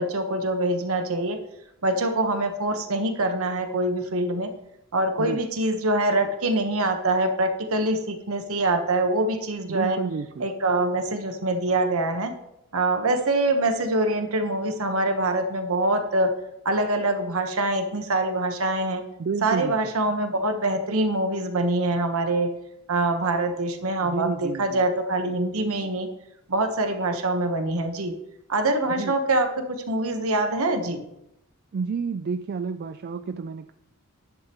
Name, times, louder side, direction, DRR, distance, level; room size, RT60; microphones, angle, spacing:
voice 1, 0.0-1.4 1.8-4.5 4.9-10.0 10.4-12.3 12.7-16.3 16.6-19.0 19.4-22.5 22.9-26.1 26.5-28.1 28.5-31.0, right 2 dB, 65° right, 6 dB, 1.1 m, -24 dB
voice 2, 9.7-10.5 19.2-19.8 24.0-24.8 28.9-29.1 31.7-33.7, right 5 dB, 45° right, 10 dB, 0.4 m, -30 dB
11.0 x 10.0 x 3.0 m, 0.85 s
head